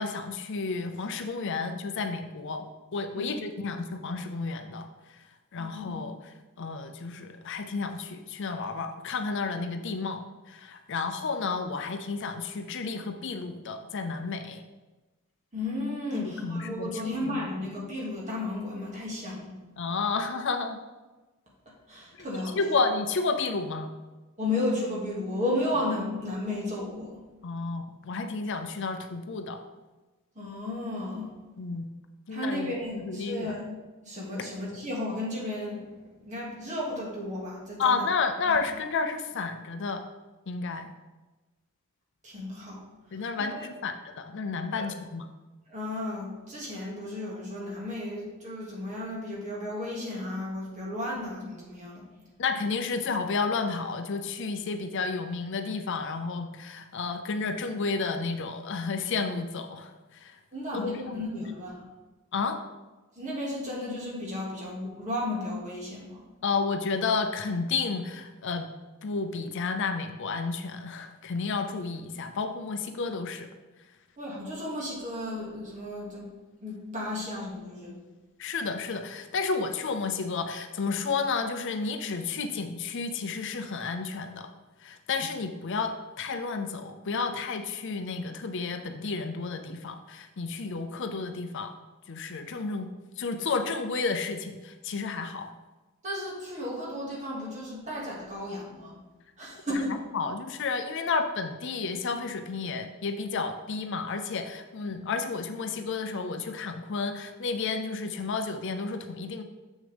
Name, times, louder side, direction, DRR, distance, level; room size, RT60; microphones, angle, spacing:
voice 1, 0.0-4.9 5.5-6.1 6.6-10.2 10.5-14.6 16.1-17.4 19.8-20.8 22.6-23.9 27.4-29.6 31.6-31.8 32.3-33.5 37.8-40.1 40.5-40.9 43.1-45.3 52.4-59.9 60.2-60.3 60.7-61.2 62.3-62.6 66.4-68.7 69.0-73.5 78.4-84.5 84.8-91.7 92.1-92.9 93.2-95.5 99.7-99.8 100.1-109.4, left 4 dB, 55° left, 7 dB, 0.5 m, -31 dB
voice 2, 5.6-5.9 15.5-19.5 21.9-22.5 24.4-27.2 30.4-31.4 32.3-33.7 34.0-38.0 38.5-38.6 42.2-42.8 43.1-43.7 44.8-44.9 45.7-52.1 60.5-61.9 63.2-66.2 74.2-76.3 76.6-77.9 96.0-99.0 99.4-100.0 104.8-105.1, left 1 dB, 35° right, -4 dB, 2.1 m, -34 dB
7.3 x 6.4 x 3.4 m, 1.2 s
head